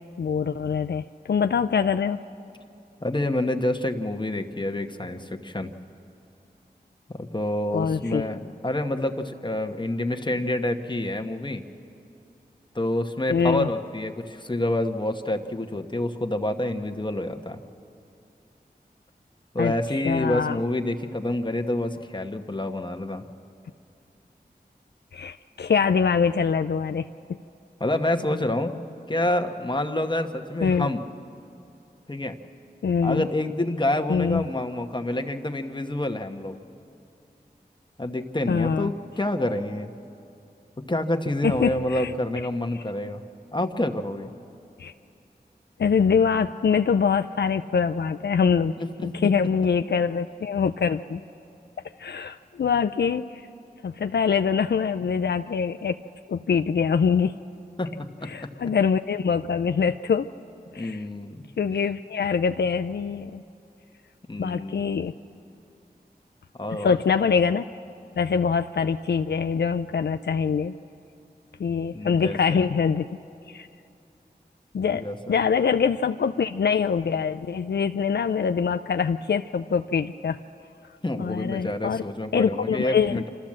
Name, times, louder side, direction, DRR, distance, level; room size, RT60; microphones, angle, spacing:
voice 1, 0.2-2.2 7.7-8.2 13.3-13.7 19.6-19.7 20.0-20.6 25.1-27.4 30.6-30.9 32.8-33.3 34.1-34.4 38.5-38.9 41.4-42.1 44.8-44.9 45.8-48.7 49.0-51.2 52.0-53.4 53.8-56.0 56.3-57.3 58.2-60.3 60.7-61.0 61.6-63.4 64.4-65.1 66.7-67.7 68.2-70.7 71.6-73.1 73.5-73.7 74.7-75.0 75.3-80.4 81.2-82.0 82.3-83.2, left 6 dB, 75° left, 8 dB, 0.4 m, -24 dB
voice 2, 3.0-5.7 7.1-11.6 12.7-17.6 19.5-23.2 27.8-28.7 29.1-31.0 32.1-32.4 33.0-36.6 38.0-39.9 40.9-43.2 43.5-44.3 48.8-49.3 57.8-58.3 60.8-61.5 64.3-64.9 66.6-67.0 71.9-72.6 74.9-75.4 81.0-83.3, left 1 dB, 25° left, 6 dB, 1.3 m, -28 dB
26.5 x 13.5 x 7.5 m, 2.6 s
cardioid pair, 40°, 17 cm